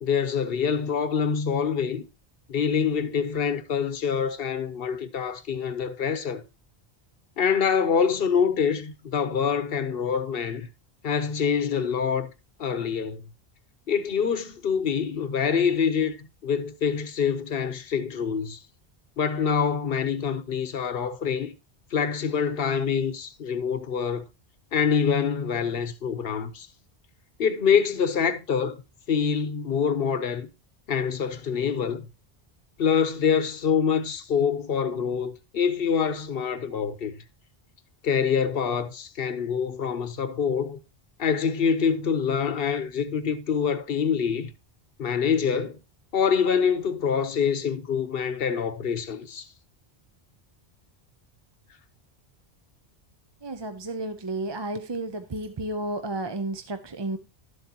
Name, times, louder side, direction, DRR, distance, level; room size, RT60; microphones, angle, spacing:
voice 1, 0.0-2.0 2.5-6.4 7.4-10.7 11.0-12.3 12.6-13.2 13.9-16.2 16.4-18.6 19.2-21.5 21.9-24.2 24.7-26.7 27.4-28.8 29.1-30.5 30.9-32.0 32.8-37.1 38.0-40.8 41.2-44.5 45.0-45.8 46.1-49.5, left 6 dB, 70° left, 1.1 m, -25 dB
voice 2, 53.4-57.2, right 2 dB, 30° right, 0.6 m, -32 dB
12.0 x 7.9 x 2.9 m
omnidirectional pair, 1.0 m